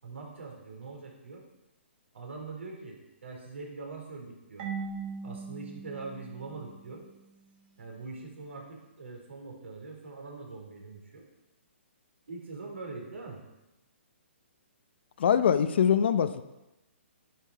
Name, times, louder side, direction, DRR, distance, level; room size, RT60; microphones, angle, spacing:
voice 1, 0.0-1.4 2.1-4.7 5.2-7.0 7.8-11.3 12.3-13.4, right 3 dB, 75° right, 0 dB, 4.1 m, -43 dB
Marimba xylophone / Wood, 4.6-7.3, right 5 dB, 45° right, 3.6 m, -40 dB
voice 2, 15.2-16.4, left 8 dB, 55° left, 12 dB, 0.7 m, -23 dB
10.5 x 10.5 x 4.8 m, 0.98 s
hypercardioid pair, 135°, 7 cm